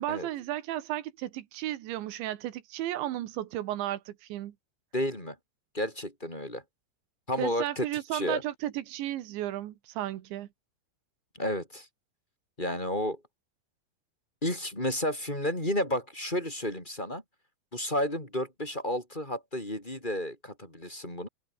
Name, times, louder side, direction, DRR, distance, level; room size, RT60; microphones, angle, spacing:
voice 1, 0.0-4.6 7.4-10.5, right 13 dB, 75° right, 3.6 m, -34 dB
voice 2, 4.9-5.4 5.7-6.6 7.3-7.9 8.1-8.4 11.4-11.9 12.6-13.2 14.4-17.2 17.7-21.3, left 1 dB, 10° left, 5.4 m, -31 dB
omnidirectional pair, 5.5 m